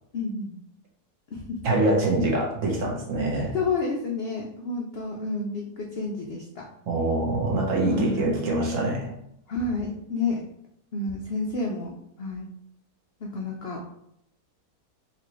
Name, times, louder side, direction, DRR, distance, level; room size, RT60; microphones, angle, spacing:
voice 1, 0.1-0.6 1.3-1.6 3.5-6.6 7.8-8.3 9.5-10.4 10.9-12.5 13.2-13.8, left 3 dB, 80° left, 0 dB, 0.5 m, -30 dB
voice 2, 1.6-3.5 6.9-9.1, right 2 dB, 60° right, -2 dB, 1.2 m, -24 dB
4.2 x 2.6 x 2.9 m, 0.77 s
omnidirectional pair, 1.6 m